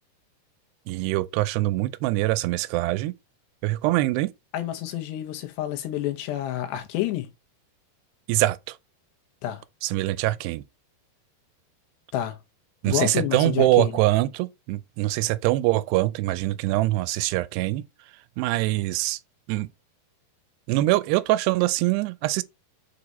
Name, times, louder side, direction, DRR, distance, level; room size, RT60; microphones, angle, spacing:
voice 1, 0.9-3.1 3.6-4.3 8.3-8.8 9.8-10.6 12.8-17.8 18.4-19.2 19.5-19.7 20.7-22.4, right 17 dB, 85° right, 2.7 m, -23 dB
voice 2, 4.5-7.3 9.4-9.6 12.1-12.4 12.9-13.9, left 13 dB, 85° left, 3.3 m, -28 dB
6.8 x 4.8 x 4.1 m
omnidirectional pair, 4.7 m